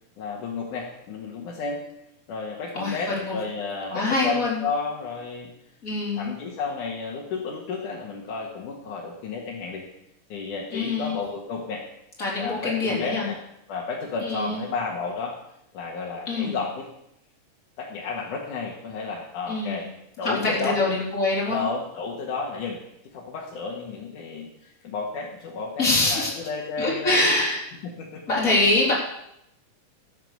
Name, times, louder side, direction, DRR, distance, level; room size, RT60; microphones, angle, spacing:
voice 1, 0.2-1.8 2.3-5.5 6.2-9.8 10.3-11.8 12.4-13.3 13.7-15.4 15.7-16.9 17.8-19.9 20.2-20.8 21.5-22.8 23.1-27.3 27.8-28.2, left 4 dB, 75° left, -2 dB, 3.2 m, -32 dB
voice 2, 2.7-3.4 3.9-4.6 5.8-6.3 10.7-11.2 12.2-13.3 14.2-14.6 16.3-16.6 19.5-19.9 20.2-21.6 25.8-26.3 26.8-27.6 28.3-28.9, left 2 dB, 25° left, -4 dB, 4.3 m, -24 dB
13.0 x 9.0 x 6.9 m, 0.80 s
omnidirectional pair, 3.6 m